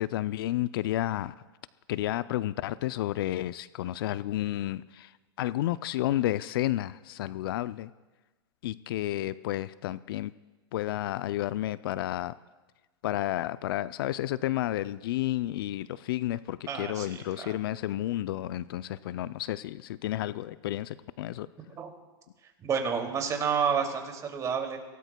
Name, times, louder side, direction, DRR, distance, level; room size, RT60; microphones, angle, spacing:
voice 1, 0.0-1.3 1.9-5.1 5.4-7.9 8.6-10.3 10.7-12.3 13.0-21.5, left 14 dB, 65° left, 16 dB, 0.4 m, -31 dB
voice 2, 16.7-17.5 21.8-21.9 22.6-24.8, right 6 dB, 25° right, 3 dB, 2.5 m, -30 dB
26.0 x 17.5 x 2.2 m, 1.2 s
hypercardioid pair, 115°, 13 cm